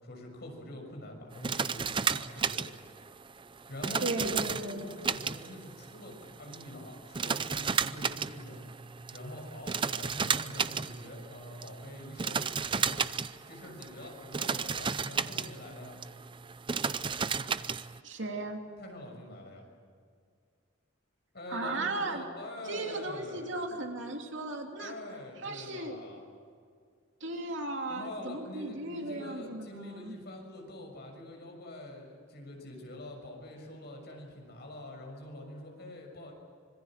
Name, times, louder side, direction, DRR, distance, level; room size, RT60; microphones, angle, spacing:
voice 1, 0.0-2.7 3.7-8.6 9.1-12.4 12.7-13.0 13.5-16.0 18.8-19.6 21.3-23.5 24.8-26.3 27.9-36.3, left 1 dB, 55° left, 2 dB, 6.5 m, -45 dB
sound 1, 1.3-18.0, right 6 dB, 25° right, 0.5 m, -34 dB
voice 2, 4.0-4.8 18.0-18.6 21.5-22.2 22.6-24.9 25.4-26.0 27.2-30.2, right 2 dB, 65° right, 2 dB, 3.0 m, -36 dB
25.5 x 22.0 x 7.5 m, 2.1 s
head